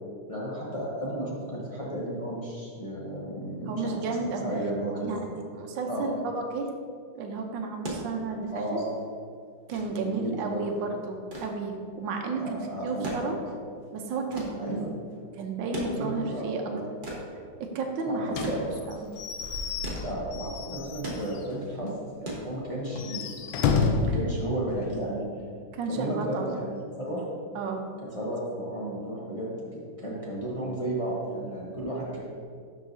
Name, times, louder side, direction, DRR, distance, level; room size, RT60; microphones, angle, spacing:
voice 1, 0.3-3.9 4.4-5.2 5.9-6.0 8.5-9.0 9.9-10.6 12.3-13.4 14.6-15.0 15.9-16.8 18.1-18.6 20.0-23.4 24.0-25.4 25.9-27.2 28.1-32.3, right 1 dB, 30° left, -6 dB, 0.7 m, -33 dB
voice 2, 3.7-4.4 5.0-5.3 5.5-6.7 7.2-8.8 9.7-13.3 13.9-14.9 15.4-16.7 17.6-19.1 25.7-26.5 27.5-27.8, right 4 dB, 75° right, 3 dB, 1.4 m, -32 dB
sound 1, 7.6-23.1 24.3-24.5, right 1 dB, 30° right, 1.0 m, -40 dB
Slam / Squeak / Wood, 18.3-21.5 21.9-22.0 22.3-22.4 22.9-24.2, left 5 dB, 80° left, 1.3 m, -30 dB
12.0 x 4.8 x 2.7 m, 2.2 s
omnidirectional pair, 2.1 m